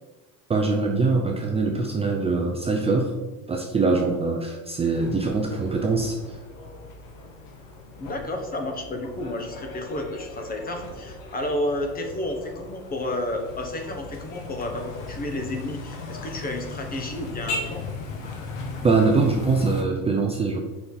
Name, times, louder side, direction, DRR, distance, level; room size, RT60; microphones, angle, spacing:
voice 1, 0.5-3.1 3.5-6.4 18.8-20.6, right 3 dB, 15° right, 1 dB, 0.5 m, -23 dB
sound 1, 4.9-19.8, left 3 dB, 85° left, 1.7 m, -37 dB
voice 2, 8.0-17.9, left 1 dB, 25° left, 4 dB, 1.1 m, -31 dB
6.7 x 5.6 x 3.9 m, 1.2 s
cardioid pair, 140°, 36 cm